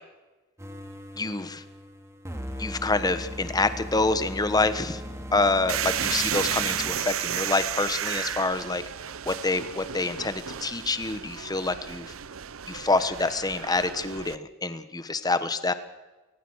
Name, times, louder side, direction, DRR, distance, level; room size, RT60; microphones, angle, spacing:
sound 1, 0.6-6.9, equal, 15° right, 2.6 m, -38 dB
voice 1, 1.2-1.6 2.5-5.0 5.3-8.8 9.3-12.1 12.7-15.7, left 3 dB, 20° left, 12 dB, 1.2 m, -27 dB
sound 2, 5.7-14.4, right 10 dB, 85° right, 0.7 m, -33 dB
22.5 x 19.5 x 6.4 m, 1.2 s
head